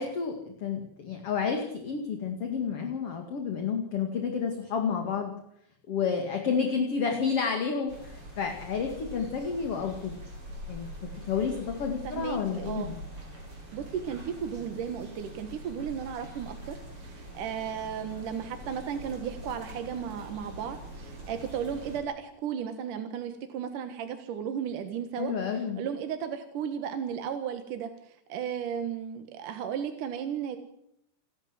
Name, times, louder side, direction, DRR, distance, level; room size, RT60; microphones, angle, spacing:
voice 1, 0.0-5.3 5.9-10.1 10.7-10.9 11.3-13.0 25.2-25.8, left 6 dB, 40° left, 4 dB, 2.6 m, -30 dB
sound 1, 7.9-22.0, right 1 dB, 30° right, 8.4 m, -44 dB
voice 2, 12.0-12.9 13.7-30.6, right 8 dB, 60° right, 7 dB, 2.6 m, -35 dB
29.0 x 12.5 x 7.9 m, 0.77 s
omnidirectional pair, 4.8 m